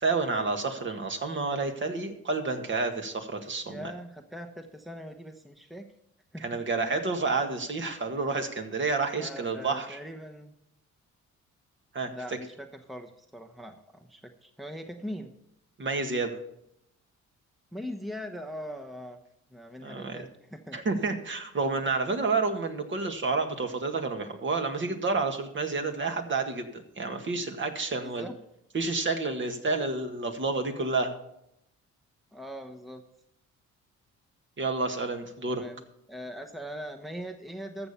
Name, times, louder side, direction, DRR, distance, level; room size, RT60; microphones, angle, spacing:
voice 1, 0.0-3.9 6.4-10.0 11.9-12.1 15.8-16.4 19.8-20.2 20.7-28.3 28.7-31.1 34.6-35.6, right 3 dB, 40° right, 5 dB, 1.8 m, -29 dB
voice 2, 3.6-5.8 6.3-7.0 9.2-10.5 12.1-15.3 17.7-19.2 19.5-20.8 28.0-28.4 32.3-33.0 35.5-37.9, equal, ahead, 5 dB, 1.0 m, -41 dB
14.0 x 7.0 x 5.7 m, 0.78 s
cardioid pair, 90°, 30 cm